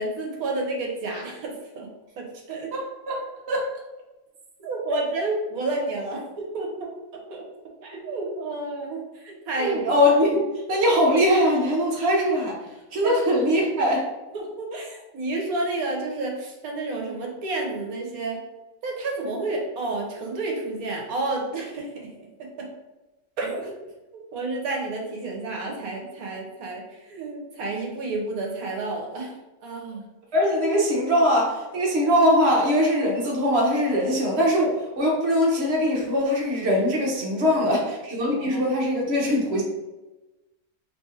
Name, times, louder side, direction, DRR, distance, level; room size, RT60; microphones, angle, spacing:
voice 1, 0.0-1.9 2.2-2.7 4.6-6.9 7.3-7.4 7.8-9.9 13.0-13.2 14.3-18.4 18.8-22.1 22.4-22.7 23.4-23.6 24.3-29.3 29.6-30.1 30.3-30.4 38.2-38.7, right 2 dB, 70° right, 0 dB, 1.2 m, -30 dB
voice 2, 9.6-12.5 12.9-14.0 30.3-39.6, equal, 50° right, -2 dB, 1.0 m, -21 dB
3.2 x 2.5 x 3.9 m, 1.1 s
omnidirectional pair, 1.7 m